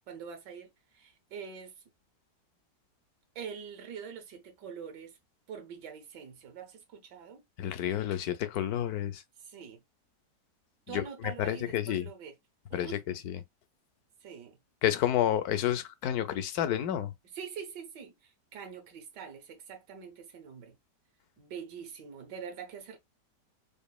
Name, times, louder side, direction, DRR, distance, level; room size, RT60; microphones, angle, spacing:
voice 1, 0.1-1.8 3.3-5.2 5.5-7.4 9.4-9.8 10.9-12.3 12.7-13.2 14.2-14.6 17.2-20.8 21.4-23.0, right 7 dB, 80° right, 1.6 m, -44 dB
voice 2, 7.6-9.2 10.9-11.0 11.4-12.1 12.7-13.0 13.2-13.4 14.8-17.1, left 11 dB, 70° left, 1.0 m, -30 dB
5.1 x 2.4 x 2.2 m
omnidirectional pair, 1.8 m